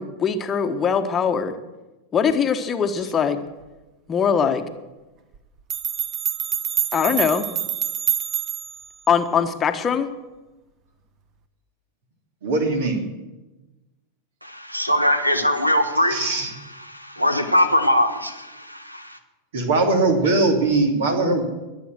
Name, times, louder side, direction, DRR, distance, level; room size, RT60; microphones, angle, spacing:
voice 1, 0.0-1.5 2.1-3.4 4.1-4.6 6.9-7.4 9.1-10.1, left 7 dB, 25° left, 7 dB, 1.2 m, -21 dB
sound 1, 5.3-5.4 5.7-8.8, right 10 dB, 35° right, 1.1 m, -26 dB
voice 2, 12.4-13.0 16.1-16.5 19.5-21.4, right 3 dB, 60° right, 3 dB, 2.9 m, -20 dB
voice 3, 14.4-16.2 16.9-19.2, equal, 90° right, 9 dB, 1.4 m, -21 dB
22.0 x 8.4 x 6.3 m, 1.1 s
figure-of-eight pair, 90°, 0 cm